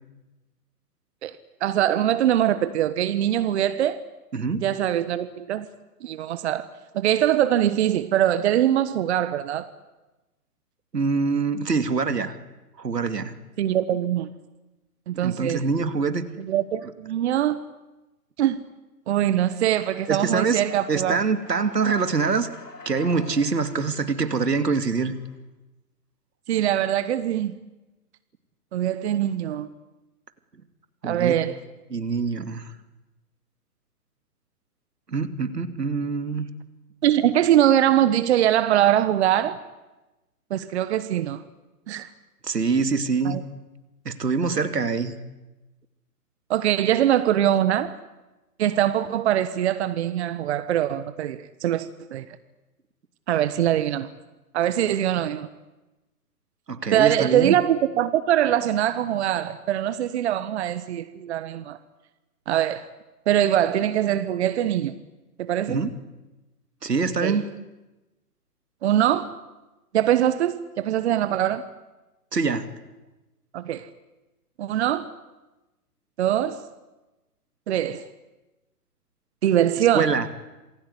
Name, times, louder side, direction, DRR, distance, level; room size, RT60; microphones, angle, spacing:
voice 1, 1.6-4.0 4.6-5.7 6.0-6.7 6.9-9.7 13.6-14.3 15.1-15.6 16.4-17.6 18.4-18.6 19.1-21.2 26.5-27.6 28.7-29.7 31.0-31.6 37.0-39.6 40.5-41.4 41.9-42.1 43.2-43.4 46.5-48.0 48.6-52.3 53.3-54.1 54.5-55.5 56.9-61.8 62.5-62.9 63.3-64.9 65.4-65.8 67.2-67.4 68.8-69.4 69.9-71.7 73.5-73.9 74.6-75.1 76.2-76.6 77.7-78.0 79.4-80.2, right 11 dB, 45° right, 1.3 m, -22 dB
voice 2, 4.3-4.6 10.9-12.3 12.8-13.3 15.1-16.3 20.1-20.6 20.9-22.5 22.8-25.1 31.0-31.4 31.9-32.7 35.1-36.5 42.4-43.4 44.0-45.2 56.7-57.5 65.7-65.9 66.8-67.5 72.3-72.7 79.9-80.3, right 4 dB, 80° right, 2.9 m, -24 dB
Human voice / Clapping / Cheering, 19.4-25.3, left 3 dB, 85° left, 6.7 m, -44 dB
27.5 x 21.0 x 9.9 m
figure-of-eight pair, 130°, 47 cm